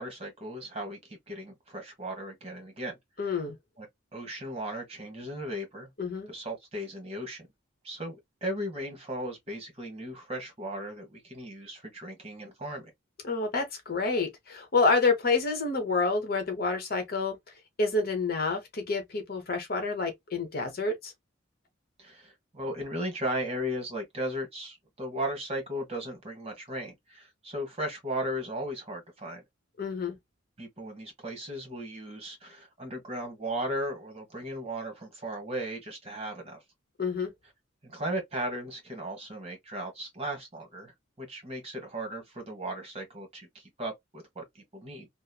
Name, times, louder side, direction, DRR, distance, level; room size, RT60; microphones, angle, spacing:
voice 1, 0.0-3.0 3.8-3.9 4.1-5.9 6.3-7.5 7.8-8.1 8.4-12.9 22.0-29.4 30.6-36.6 37.8-40.9 41.2-45.1, right 1 dB, 30° right, 1.3 m, -36 dB
voice 2, 3.2-3.6 6.0-6.3 13.2-17.4 17.8-21.1 29.8-30.2 37.0-37.3, left 3 dB, 50° left, 0.9 m, -28 dB
3.0 x 2.0 x 2.2 m
head